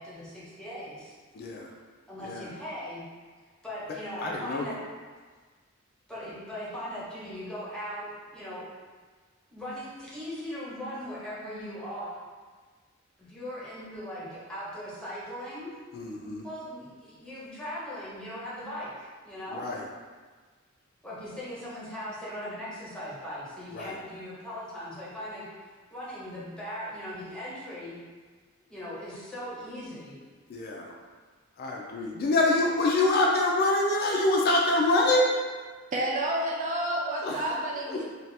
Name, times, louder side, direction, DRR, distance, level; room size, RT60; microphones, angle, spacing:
voice 1, 0.0-1.2 2.1-3.0 3.6-4.8 6.1-9.0 9.5-12.1 13.2-15.8 16.4-19.7 21.0-25.5 25.9-28.0 28.7-30.1, equal, 5° left, -9 dB, 0.8 m, -39 dB
voice 2, 1.3-1.7 2.2-2.5 4.2-4.6 15.9-16.5 19.5-19.9 23.7-24.0 30.5-30.9 31.6-35.4 37.2-37.5 37.9-38.1, left 2 dB, 50° left, -1 dB, 0.4 m, -25 dB
voice 3, 35.9-38.1, right 1 dB, 40° right, -3 dB, 0.4 m, -29 dB
2.7 x 2.3 x 3.2 m, 1.4 s
head